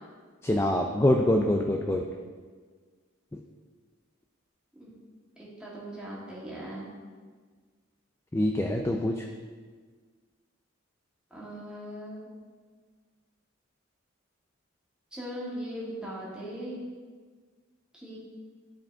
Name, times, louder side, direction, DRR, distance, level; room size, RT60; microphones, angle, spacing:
voice 1, 0.4-2.0 3.3-3.4 8.3-9.2, left 1 dB, 15° left, 2 dB, 0.3 m, -25 dB
voice 2, 5.4-6.9 11.3-12.3 15.1-16.8 17.9-18.2, equal, 5° right, -7 dB, 1.8 m, -39 dB
11.5 x 5.0 x 3.5 m, 1.5 s
head